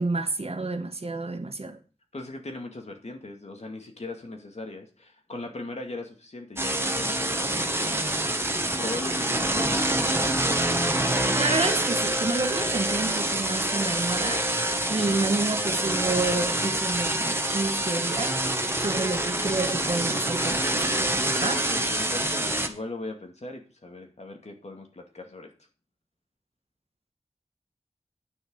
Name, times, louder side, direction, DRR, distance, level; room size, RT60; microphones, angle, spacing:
voice 1, 0.0-1.8 11.3-14.5 14.9-18.4 18.8-21.1 21.4-21.6, right 3 dB, 60° right, 1.6 m, -29 dB
voice 2, 2.1-8.5 8.8-10.3 21.4-25.5, left 2 dB, 70° left, 2.4 m, -39 dB
sound 1, 6.6-22.7, right 1 dB, 20° right, 1.4 m, -26 dB
9.7 x 6.5 x 6.3 m
wide cardioid pair, 70°, 12 cm